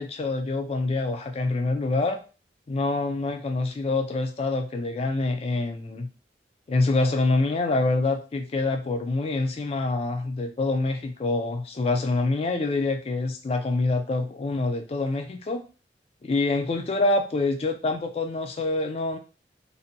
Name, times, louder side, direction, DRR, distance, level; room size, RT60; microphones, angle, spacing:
voice 1, 0.0-2.2 2.7-6.1 6.7-15.6 16.2-19.2, left 2 dB, 35° left, 7 dB, 0.3 m, -26 dB
2.6 x 2.1 x 2.6 m, 0.34 s
head